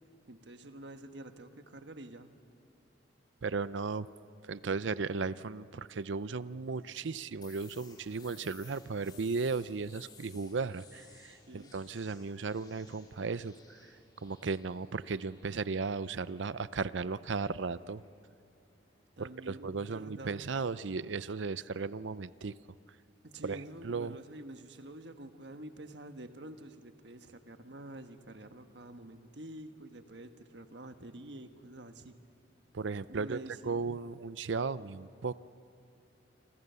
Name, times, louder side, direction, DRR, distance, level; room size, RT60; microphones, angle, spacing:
voice 1, 0.3-2.3 11.5-11.7 19.2-20.4 23.2-32.1 33.1-33.9, right 1 dB, 70° right, 7 dB, 1.4 m, -48 dB
voice 2, 3.4-4.1 4.4-13.8 14.2-18.0 19.2-22.5 23.4-24.2 32.7-33.4 33.6-35.3, right 4 dB, 90° right, 16 dB, 0.6 m, -36 dB
sound 1, 7.4-19.0, left 5 dB, 25° left, 3.1 m, -59 dB
28.0 x 25.0 x 6.9 m, 2.6 s
head